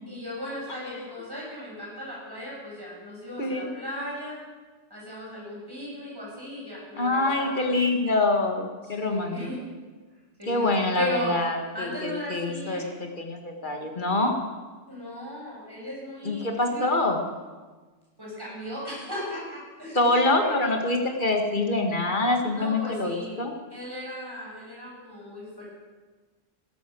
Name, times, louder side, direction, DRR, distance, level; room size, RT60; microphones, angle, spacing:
voice 1, 0.1-4.4 4.9-7.7 8.8-9.6 10.4-10.7 10.9-11.3 11.7-12.9 14.9-16.5 16.7-16.9 18.2-20.5 22.5-23.4 23.7-25.6, left 1 dB, 20° right, -5 dB, 6.7 m, -36 dB
voice 2, 7.0-9.4 10.5-14.4 16.2-17.2 20.0-23.5, left 2 dB, 40° left, 4 dB, 1.9 m, -25 dB
17.0 x 12.5 x 6.2 m, 1.3 s
omnidirectional pair, 1.3 m